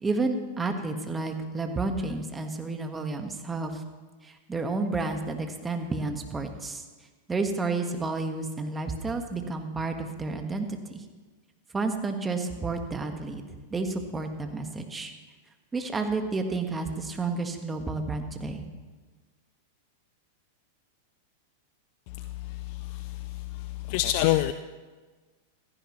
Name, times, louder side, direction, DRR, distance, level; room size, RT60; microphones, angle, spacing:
voice 1, 0.0-3.8 4.2-6.8 7.3-11.0 11.7-13.4 13.7-15.1 15.7-18.6, right 3 dB, 15° right, 5 dB, 1.5 m, -31 dB
voice 2, 22.7-23.2 23.6-24.5, left 14 dB, 55° left, 11 dB, 0.4 m, -26 dB
16.5 x 14.5 x 3.2 m, 1.3 s
hypercardioid pair, 100°, 0 cm